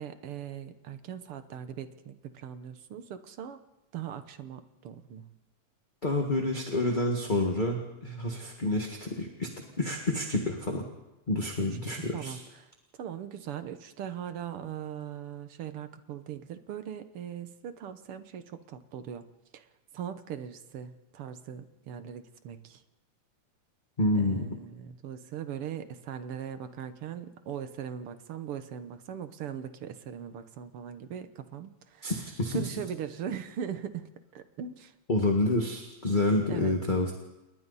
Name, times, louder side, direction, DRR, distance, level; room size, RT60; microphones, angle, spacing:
voice 1, 0.0-3.6 3.9-5.3 11.6-19.2 19.5-19.7 19.9-22.8 24.2-32.1 32.5-34.9 36.5-36.7, right 9 dB, 60° right, 10 dB, 1.7 m, -40 dB
voice 2, 6.0-9.5 9.8-10.8 11.3-12.4 24.0-24.4 32.0-32.7 35.1-37.1, left 2 dB, 20° left, 2 dB, 1.4 m, -28 dB
29.0 x 21.5 x 4.2 m, 1.0 s
omnidirectional pair, 3.3 m